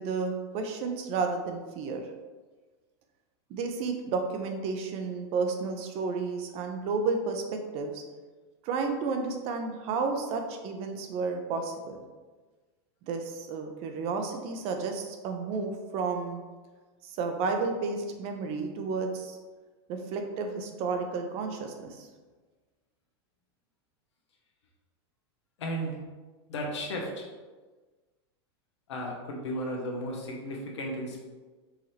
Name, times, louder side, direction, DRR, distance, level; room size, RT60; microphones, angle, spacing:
voice 1, 0.0-2.0 3.5-8.0 8.6-12.0 13.1-16.4 17.0-19.4 19.9-22.1, right 4 dB, 45° right, 5 dB, 0.6 m, -32 dB
voice 2, 25.6-25.9 26.5-27.2 28.9-31.2, equal, 90° left, 0 dB, 1.0 m, -34 dB
4.7 x 2.9 x 3.2 m, 1.3 s
supercardioid pair, 125°, 14 cm